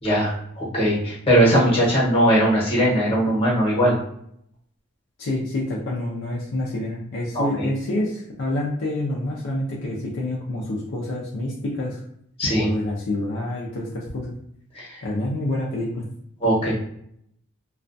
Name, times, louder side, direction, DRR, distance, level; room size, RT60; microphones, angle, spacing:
voice 1, 0.0-4.0 7.3-7.7 12.4-12.7 14.7-15.0 16.4-16.7, equal, 25° left, -5 dB, 1.0 m, -20 dB
voice 2, 5.2-12.0 12.6-14.3 15.0-16.1, left 1 dB, 60° left, -4 dB, 0.5 m, -27 dB
2.3 x 2.1 x 2.5 m, 0.71 s
head